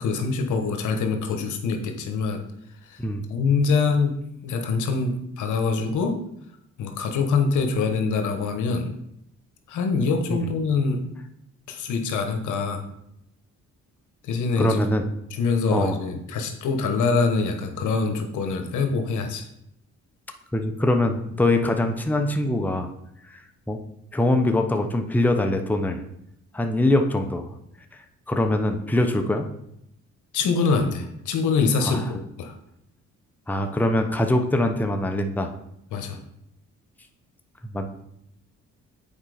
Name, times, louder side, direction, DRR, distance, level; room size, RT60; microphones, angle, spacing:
voice 1, 0.0-2.4 2.9-3.0 3.3-4.2 4.4-6.2 6.8-8.9 9.7-11.0 11.7-12.8 14.2-14.8 15.3-19.5 30.3-32.5 35.9-36.2, left 4 dB, 80° left, 6 dB, 1.1 m, -24 dB
voice 2, 14.6-15.0 15.7-16.0 20.5-22.9 23.3-23.4 23.7-23.8 24.1-26.0 26.5-27.5 27.9-28.0 28.3-29.5 31.9-32.0 33.5-35.5 37.6-37.9, left 1 dB, 5° left, 5 dB, 0.7 m, -23 dB
7.4 x 4.3 x 4.9 m, 0.77 s
cardioid pair, 90°, 30 cm